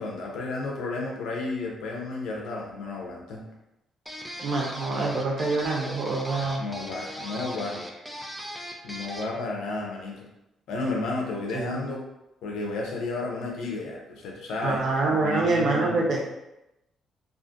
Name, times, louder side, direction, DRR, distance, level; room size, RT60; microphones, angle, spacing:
voice 1, 0.0-3.5 6.6-7.8 8.8-10.3 10.7-12.0 12.4-14.8 15.1-16.1, left 3 dB, 80° left, -1 dB, 0.6 m, -32 dB
sound 1, 4.1-9.4, equal, ahead, 0.4 m, -39 dB
voice 2, 4.4-6.6 11.5-11.8 14.6-16.2, right 3 dB, 65° right, 0 dB, 0.6 m, -25 dB
2.5 x 2.4 x 2.5 m, 0.90 s
cardioid pair, 90°, 0 cm